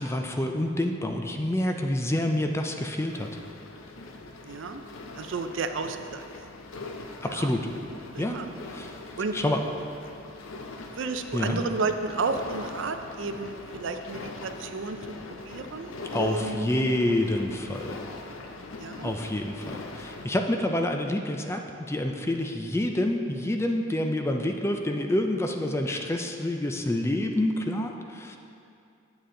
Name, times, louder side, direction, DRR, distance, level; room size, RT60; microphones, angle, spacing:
voice 1, 0.0-3.3 7.2-7.7 8.2-8.4 8.7-9.6 11.3-11.6 16.1-18.0 19.0-28.4, left 1 dB, 15° left, 4 dB, 0.4 m, -28 dB
sound 1, 3.1-20.2, left 3 dB, 75° left, 0.6 m, -42 dB
voice 2, 4.4-4.8 5.2-6.2 7.3-7.5 8.1-8.5 9.2-9.4 10.9-15.0 15.4-16.7 17.0-17.1 18.8-19.1, right 4 dB, 65° right, 7 dB, 0.5 m, -32 dB
8.9 x 6.9 x 3.8 m, 2.6 s
head